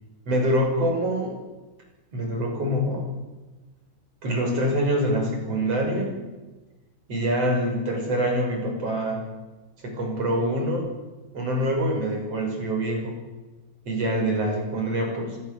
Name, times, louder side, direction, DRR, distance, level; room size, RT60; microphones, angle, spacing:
voice 1, 0.3-1.4 2.1-3.1 4.2-6.2 7.1-9.2 9.8-10.9 11.3-13.2 13.9-15.4, equal, 35° right, 1 dB, 7.7 m, -25 dB
25.5 x 21.0 x 7.2 m, 1.2 s
omnidirectional pair, 4.8 m